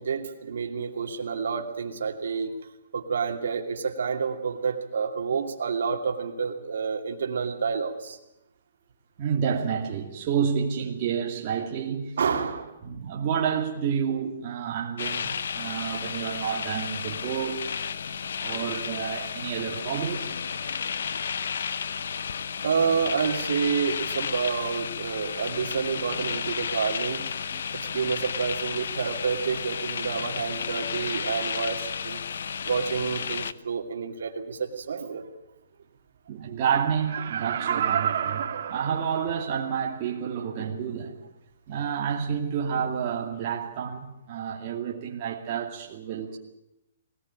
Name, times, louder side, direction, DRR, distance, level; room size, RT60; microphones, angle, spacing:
voice 1, 0.0-2.5 2.9-8.2 12.2-12.8 15.6-15.7 18.5-18.7 21.4-21.5 22.6-27.2 27.7-32.2 32.6-35.2, right 6 dB, 75° right, 2.6 m, -29 dB
voice 2, 9.2-12.2 12.8-17.8 18.4-20.4 27.5-27.6 36.3-41.1 41.7-46.4, right 7 dB, 30° right, 2.5 m, -29 dB
sound 1, 15.0-33.5, left 7 dB, 70° left, 0.8 m, -32 dB
Laughter, 36.9-39.6 40.1-40.2, right 9 dB, 50° right, 1.8 m, -29 dB
20.5 x 18.5 x 9.0 m
hypercardioid pair, 175°, 0 cm